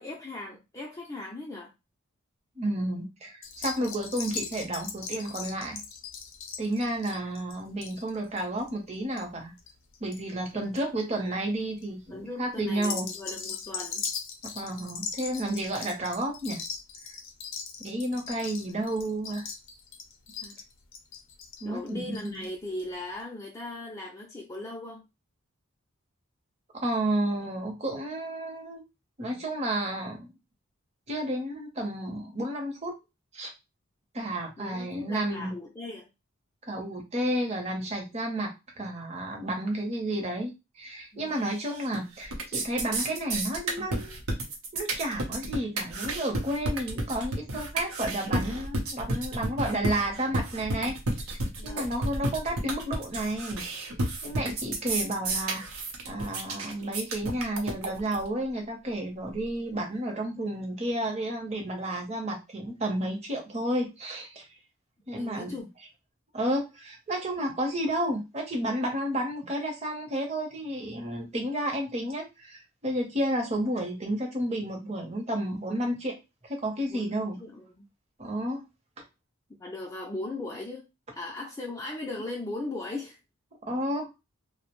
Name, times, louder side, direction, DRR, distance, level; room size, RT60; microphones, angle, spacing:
voice 1, 0.0-1.7 12.1-14.0 20.4-20.5 21.6-25.0 34.6-36.1 41.1-41.4 51.6-51.9 65.1-65.7 76.9-77.9 79.6-80.9 81.2-83.2, left 2 dB, 15° left, 0.3 m, -38 dB
voice 2, 2.6-5.8 6.6-9.5 10.0-13.1 14.4-16.6 17.8-19.5 21.6-22.5 26.7-28.8 29.2-30.3 31.1-32.9 33.3-33.5 34.1-35.5 36.6-44.1 44.7-51.0 51.2-53.9 54.2-55.7 56.1-64.5 65.1-65.6 66.3-76.2 76.4-77.4 78.2-78.6 83.7-84.1, right 1 dB, 30° right, 0.7 m, -31 dB
sound 1, 3.4-10.2 10.5-11.0 11.5-11.9 12.7-22.5 22.8-22.9 23.1-23.2, left 6 dB, 65° left, 0.5 m, -39 dB
sound 2, 41.5-42.0 42.2-58.2, right 2 dB, 85° right, 0.7 m, -31 dB
2.5 x 2.1 x 2.9 m
head